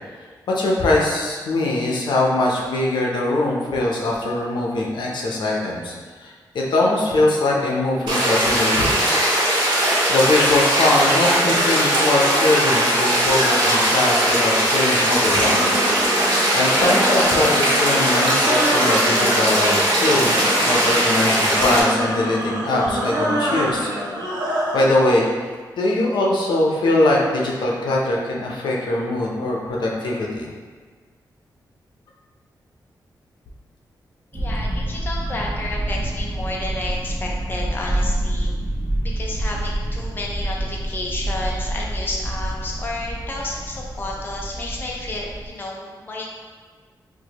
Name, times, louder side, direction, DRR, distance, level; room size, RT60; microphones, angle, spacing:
voice 1, 0.5-5.9 6.2-9.2 10.1-15.7 16.1-20.3 20.7-23.9 24.7-30.5, left 2 dB, 90° left, -2 dB, 0.6 m, -21 dB
sound 1, 8.1-21.8, right 1 dB, 85° right, 1.2 m, -19 dB
sound 2, 15.0-24.9, right 1 dB, 65° right, 0.6 m, -26 dB
voice 2, 34.3-38.5 39.0-46.4, left 2 dB, 25° left, -2 dB, 0.4 m, -31 dB
sound 3, 34.3-45.5, right 1 dB, 20° right, 0.6 m, -27 dB
4.5 x 2.1 x 2.9 m, 1.5 s
wide cardioid pair, 160°, 8 cm